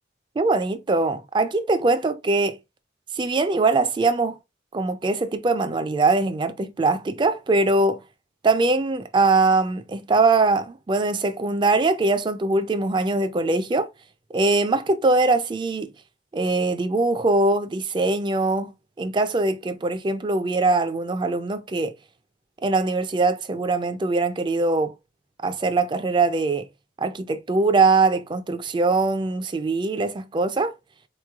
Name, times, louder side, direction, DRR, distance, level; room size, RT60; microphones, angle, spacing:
voice 1, 0.4-2.6 3.2-4.4 4.7-8.0 8.4-13.9 14.3-15.9 16.3-18.7 19.0-21.9 22.6-24.9 25.4-26.7 27.0-30.7, right 3 dB, 25° right, 0.3 m, -22 dB
3.9 x 3.0 x 2.3 m
head